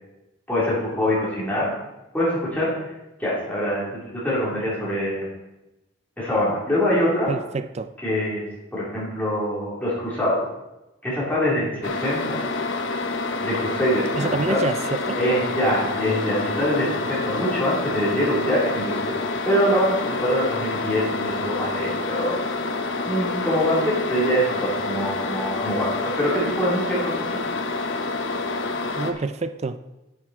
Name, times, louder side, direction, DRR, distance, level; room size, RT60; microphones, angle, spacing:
voice 1, 0.5-1.7 2.1-2.7 3.2-5.3 6.2-7.3 8.0-8.4 8.7-10.4 11.0-12.4 13.4-14.6 15.2-19.1 19.4-22.4 23.0-27.4, equal, 10° left, 3.7 m, -24 dB
voice 2, 7.3-7.9 14.1-15.2 29.0-29.8, right 3 dB, 35° right, 0.4 m, -27 dB
sound 1, 11.8-29.1, left 3 dB, 75° left, 1.0 m, -27 dB
10.5 x 8.0 x 4.3 m
head